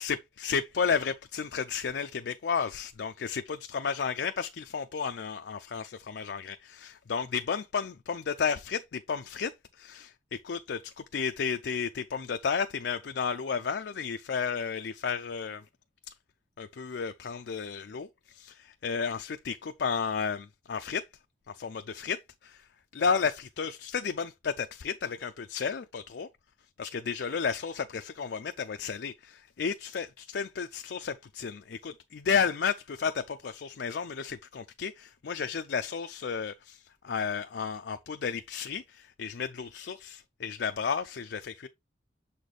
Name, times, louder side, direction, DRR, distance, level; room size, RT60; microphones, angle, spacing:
voice 1, 0.0-15.6 16.6-21.0 21.5-22.6 22.9-26.3 26.8-41.7, left 6 dB, 70° left, 0.4 m, -32 dB
7.0 x 4.2 x 3.2 m
head